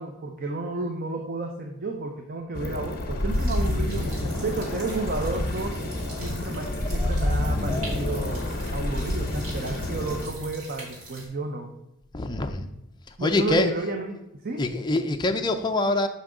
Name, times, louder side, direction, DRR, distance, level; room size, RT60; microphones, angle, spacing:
voice 1, 0.0-4.1 4.4-5.8 6.2-8.4 8.7-11.7 13.2-14.6, right 2 dB, 40° right, 3 dB, 0.6 m, -32 dB
sound 1, 2.5-10.3, left 1 dB, 45° left, 0.8 m, -28 dB
sound 2, 3.3-11.3, right 1 dB, 80° right, 2.6 m, -43 dB
Laughter / Crowd, 3.8-10.2, left 2 dB, ahead, 1.0 m, -43 dB
voice 2, 12.1-12.7 13.2-13.7 14.6-16.1, left 2 dB, 20° left, 5 dB, 0.5 m, -25 dB
6.1 x 5.5 x 4.9 m, 0.87 s
head